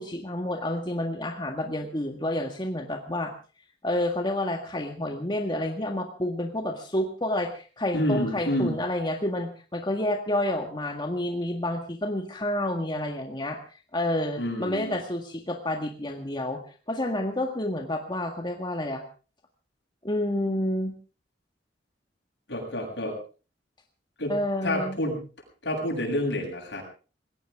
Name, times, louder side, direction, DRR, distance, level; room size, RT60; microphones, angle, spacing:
voice 1, 0.0-3.3 3.8-13.6 13.9-16.6 16.9-19.0 20.0-20.9 24.3-25.0, left 1 dB, 25° left, 4 dB, 1.8 m, -29 dB
voice 2, 7.9-8.7 14.4-15.0 22.5-23.2 24.2-25.2 25.6-26.8, left 1 dB, 75° left, 3 dB, 7.6 m, -28 dB
21.0 x 18.0 x 3.6 m, 0.36 s
head